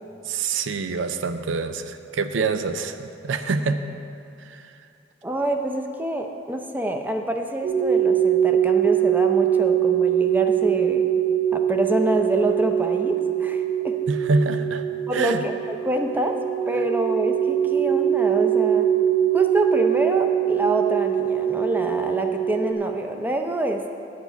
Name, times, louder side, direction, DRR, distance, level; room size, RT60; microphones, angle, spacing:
voice 1, 0.3-3.9 4.5-4.7 14.1-14.8 15.1-15.4, right 4 dB, 85° right, 9 dB, 0.5 m, -25 dB
voice 2, 5.2-11.0 11.5-14.0 15.1-16.4 16.7-18.9 19.3-23.9, right 1 dB, 10° right, 4 dB, 0.6 m, -26 dB
sound 1, 7.6-22.7, right 10 dB, 70° right, 1.6 m, -22 dB
9.4 x 5.9 x 8.1 m, 2.6 s
head